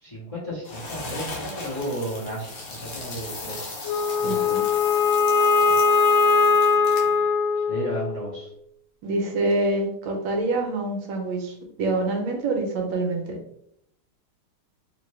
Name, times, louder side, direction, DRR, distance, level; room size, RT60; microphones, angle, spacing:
voice 1, 0.0-3.7 4.2-4.5 5.6-5.7 7.7-8.5, right 1 dB, 25° left, -7 dB, 0.8 m, -33 dB
sound 1, 0.6-7.2, left 2 dB, 55° left, 1.0 m, -36 dB
Wind instrument woodwind instrument, 3.8-8.3, left 5 dB, 85° left, 1.5 m, -20 dB
voice 2, 4.2-4.6 9.0-13.2, right 2 dB, 75° right, 2 dB, 1.4 m, -26 dB
3.3 x 3.0 x 3.1 m, 0.73 s
omnidirectional pair, 2.3 m